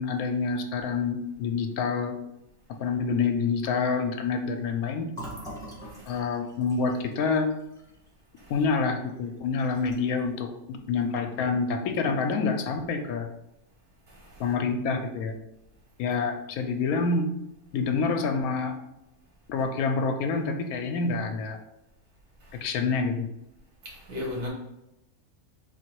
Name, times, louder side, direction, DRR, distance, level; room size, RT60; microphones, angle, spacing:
voice 1, 0.0-2.2 2.8-5.1 6.1-7.5 8.5-13.3 14.4-15.3 16.0-17.3 17.7-18.7 19.5-21.6 22.6-23.3, left 4 dB, 80° left, 1.0 m, -27 dB
Fill (with liquid), 5.1-8.8 9.1-9.3 9.6-10.2, right 1 dB, ahead, 1.3 m, -44 dB
voice 2, 5.8-6.2 8.4-8.5 14.1-14.4 22.4-22.6 23.8-24.5, left 2 dB, 55° right, 1.4 m, -38 dB
3.8 x 2.7 x 4.5 m
omnidirectional pair, 1.5 m